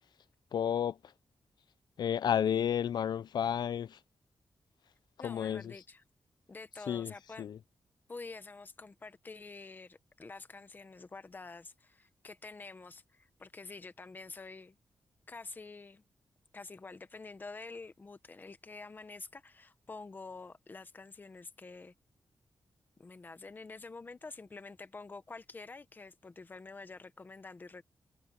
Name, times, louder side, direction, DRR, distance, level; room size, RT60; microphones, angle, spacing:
voice 1, 0.5-1.0 2.0-4.0 5.2-5.7 6.9-7.6, left 9 dB, 70° left, 0.5 m, -31 dB
voice 2, 5.2-6.0 6.5-7.5 8.1-14.8 15.3-16.0 16.5-21.9 23.0-27.8, left 3 dB, 25° left, 1.0 m, -48 dB
wide cardioid pair, 175°, 8 cm